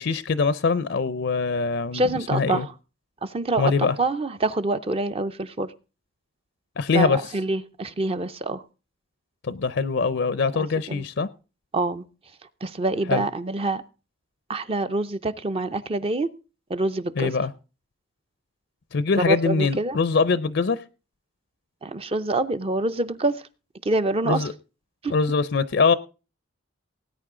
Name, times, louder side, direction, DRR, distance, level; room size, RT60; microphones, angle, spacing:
voice 1, 0.0-2.7 3.6-3.9 6.8-7.2 9.4-11.3 13.1-13.2 17.2-17.5 18.9-20.8 24.2-24.5 25.1-25.9, left 4 dB, 55° left, 0.5 m, -23 dB
voice 2, 1.9-2.7 3.2-5.7 6.9-8.6 10.6-11.0 11.7-12.0 12.6-13.8 14.5-16.3 16.7-17.3 19.1-20.0 21.8-23.4 23.8-24.4 25.0-25.1, right 2 dB, 30° right, 0.5 m, -26 dB
18.5 x 9.2 x 3.7 m
head